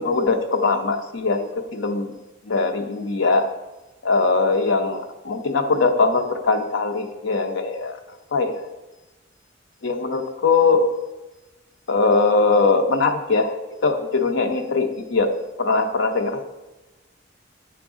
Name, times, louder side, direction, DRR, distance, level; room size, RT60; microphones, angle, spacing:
voice 1, 0.0-2.1 2.4-3.5 4.0-8.0 8.3-8.6 9.8-10.9 11.9-13.5 13.8-15.3 15.6-16.5, left 3 dB, 70° left, 5 dB, 0.7 m, -21 dB
7.2 x 6.2 x 3.7 m, 1.1 s
head